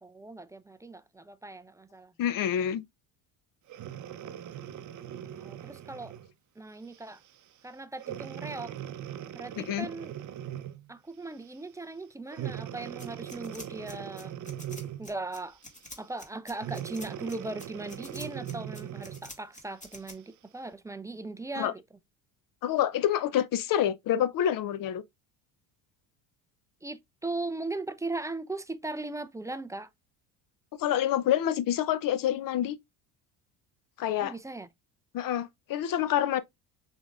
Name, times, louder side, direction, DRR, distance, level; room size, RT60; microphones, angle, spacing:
voice 1, 0.0-2.1 5.2-6.2 6.6-7.2 7.6-8.7 9.3-10.1 10.9-14.3 15.0-15.6 16.0-21.8 26.8-29.9 34.2-34.7, right 2 dB, 10° right, 0.3 m, -38 dB
voice 2, 2.2-2.8 9.6-9.9 21.6-21.7 22.6-25.0 30.8-32.8 34.0-34.3 35.1-36.4, left 11 dB, 45° left, 0.6 m, -27 dB
Breathing, 3.7-6.3 6.9-7.2 8.0-10.9 12.3-15.2 16.5-19.3 19.9-20.0, right 10 dB, 40° right, 0.7 m, -40 dB
sound 1, 13.0-20.1, left 1 dB, 15° left, 1.6 m, -47 dB
6.1 x 3.5 x 2.3 m
hypercardioid pair, 75°, 46 cm